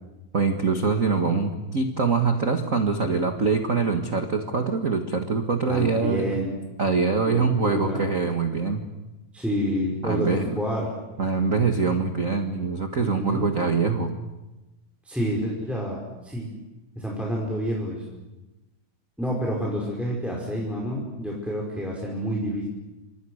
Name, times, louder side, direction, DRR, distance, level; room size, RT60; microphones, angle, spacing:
voice 1, 0.3-6.3 6.8-8.8 10.0-10.6 11.2-14.1, right 4 dB, 40° right, 5 dB, 1.1 m, -24 dB
voice 2, 5.7-6.6 7.3-8.0 9.3-10.9 13.0-13.4 15.0-16.5 17.0-18.0 19.2-22.6, equal, ahead, -3 dB, 5.1 m, -28 dB
29.5 x 26.0 x 6.6 m, 1.0 s
omnidirectional pair, 3.9 m